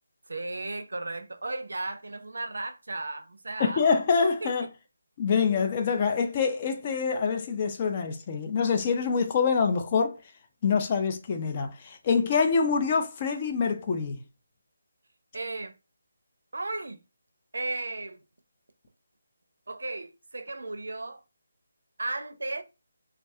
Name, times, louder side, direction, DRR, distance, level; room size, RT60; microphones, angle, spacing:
voice 1, 0.3-3.8 4.4-4.5 15.3-15.7 16.5-17.0 17.5-18.2 19.7-21.2 22.0-22.6, right 2 dB, 85° right, 0.5 m, -35 dB
voice 2, 3.6-4.7 5.2-10.2 10.6-14.2, left 5 dB, 30° left, 0.3 m, -25 dB
2.3 x 2.3 x 2.6 m
figure-of-eight pair, 165°, 0 cm